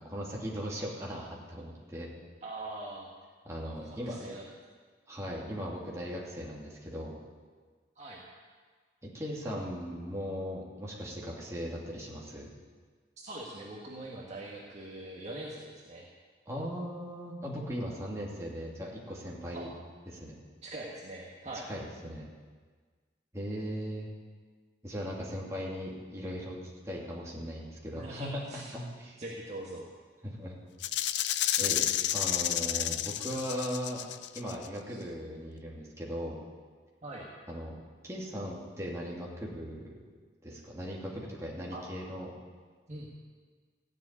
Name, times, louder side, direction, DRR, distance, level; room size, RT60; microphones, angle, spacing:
voice 1, 0.0-2.1 3.4-4.4 5.1-7.2 9.0-12.5 16.5-19.7 20.1-20.4 21.7-22.3 23.3-24.1 24.8-26.6 26.8-28.4 28.7-29.2 30.2-30.5 31.6-34.0 34.3-36.4 37.5-37.8 38.0-42.3, equal, 15° right, -4 dB, 2.8 m, -38 dB
voice 2, 2.4-3.1 3.7-4.5 8.0-8.2 13.2-16.1 19.5-19.7 20.6-21.7 27.9-28.7 29.2-29.9 34.9-35.0 37.0-37.3 41.7-41.8 42.9-43.1, right 2 dB, 40° right, -3 dB, 1.8 m, -42 dB
Rattle (instrument), 30.8-34.7, left 12 dB, 75° left, 0.5 m, -31 dB
15.0 x 7.8 x 9.9 m, 1.5 s
head